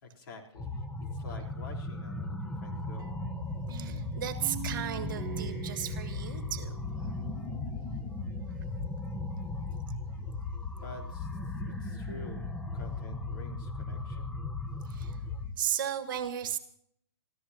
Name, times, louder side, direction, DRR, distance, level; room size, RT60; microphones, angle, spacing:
voice 1, 0.0-3.1 10.8-11.3 11.6-14.4, left 3 dB, 50° left, 1 dB, 4.0 m, -48 dB
sound 1, 0.6-15.5, left 2 dB, 5° left, 1.0 m, -37 dB
sound 2, 3.0-7.9, right 10 dB, 20° right, 2.1 m, -45 dB
voice 2, 3.7-7.1 14.8-15.2 15.6-16.6, right 10 dB, 45° right, 10 dB, 1.6 m, -35 dB
26.5 x 14.5 x 2.9 m, 0.67 s
figure-of-eight pair, 125°, 14 cm